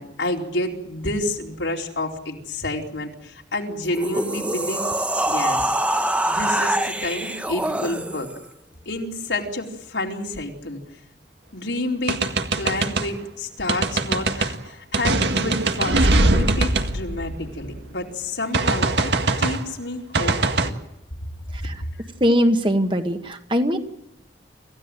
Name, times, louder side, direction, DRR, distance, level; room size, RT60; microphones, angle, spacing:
voice 1, 0.0-4.9 5.3-5.8 6.3-8.3 8.9-10.8 11.5-20.7, left 2 dB, 85° left, 0 dB, 4.3 m, -29 dB
sound 1, 3.8-8.4, right 1 dB, 5° right, 1.1 m, -24 dB
sound 2, 12.1-13.1 13.7-14.5 14.9-17.8 18.5-19.6 20.1-20.7, right 2 dB, 70° right, 1.9 m, -21 dB
voice 2, 22.2-23.8, equal, 25° right, 6 dB, 1.9 m, -21 dB
27.0 x 16.0 x 9.1 m, 0.85 s
head